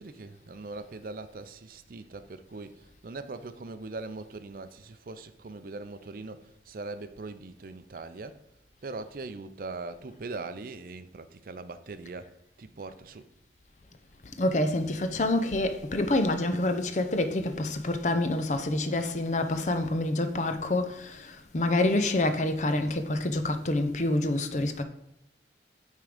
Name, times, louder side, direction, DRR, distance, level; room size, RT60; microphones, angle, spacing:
voice 1, 0.0-8.4 8.8-13.3, right 3 dB, 50° right, 0.5 m, -41 dB
voice 2, 14.4-24.8, left 2 dB, 40° left, 0.6 m, -27 dB
9.1 x 3.7 x 5.0 m
head